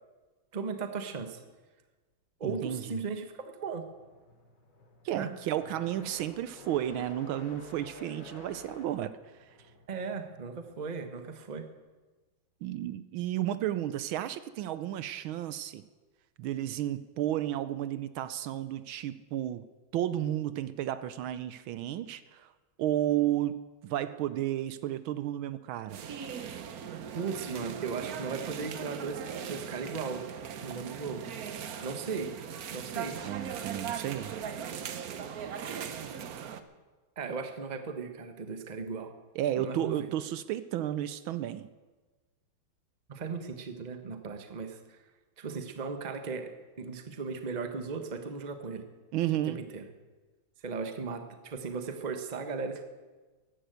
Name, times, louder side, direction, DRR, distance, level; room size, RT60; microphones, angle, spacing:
voice 1, 0.5-1.4 2.4-3.9 5.1-5.3 9.9-11.7 27.1-30.2 30.6-31.3 31.8-32.3 32.7-33.2 37.2-39.1 39.6-40.1 43.1-45.0 45.4-48.8 49.4-49.9 50.6-52.8, right 5 dB, 25° right, 7 dB, 1.0 m, -37 dB
voice 2, 2.4-3.0 5.0-9.5 12.6-15.8 16.4-19.7 19.9-22.5 22.8-23.6 23.8-26.0 33.2-34.4 39.4-41.7 49.1-49.6, right 12 dB, 75° right, 13 dB, 1.4 m, -32 dB
sound 1, 3.8-11.7, left 2 dB, 75° left, 3.5 m, -51 dB
sound 2, 25.9-36.6, right 8 dB, 55° right, 1.1 m, -39 dB
14.0 x 11.5 x 8.0 m, 1.3 s
omnidirectional pair, 2.3 m